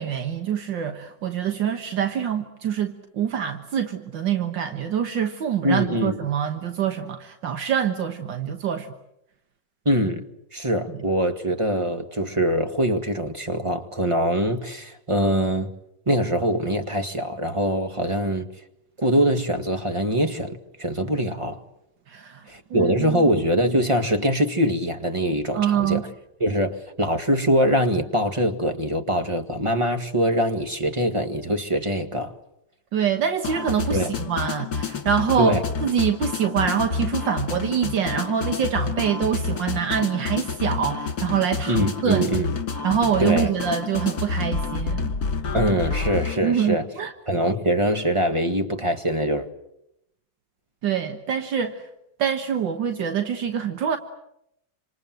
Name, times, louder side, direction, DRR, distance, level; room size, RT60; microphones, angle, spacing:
voice 1, 0.0-8.9 22.1-22.4 22.7-23.3 25.5-26.0 32.9-35.6 35.8-42.2 42.8-45.1 46.4-47.1 50.8-51.8 52.2-54.0, right 8 dB, 75° right, 2.0 m, -25 dB
voice 2, 5.6-6.2 9.9-10.3 10.5-15.7 16.1-18.5 19.0-21.6 22.5-26.1 26.4-32.3 33.9-34.1 35.4-35.6 41.7-42.6 43.2-43.5 45.5-46.9 47.3-49.5, equal, 15° right, 1.8 m, -23 dB
sound 1, 33.4-46.4, left 5 dB, 55° left, 2.6 m, -29 dB
27.5 x 26.5 x 7.7 m
omnidirectional pair, 2.0 m